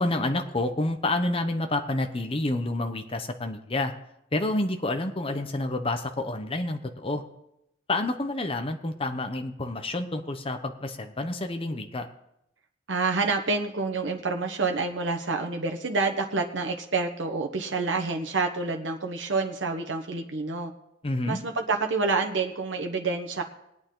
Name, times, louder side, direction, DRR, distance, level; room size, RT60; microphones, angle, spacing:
voice 1, 0.0-3.9 4.3-7.2 7.9-12.1 21.0-21.4, left 2 dB, 30° left, 6 dB, 0.9 m, -29 dB
voice 2, 12.9-20.7 21.3-23.4, right 3 dB, 75° right, 3 dB, 1.1 m, -28 dB
20.0 x 8.9 x 3.9 m, 0.81 s
head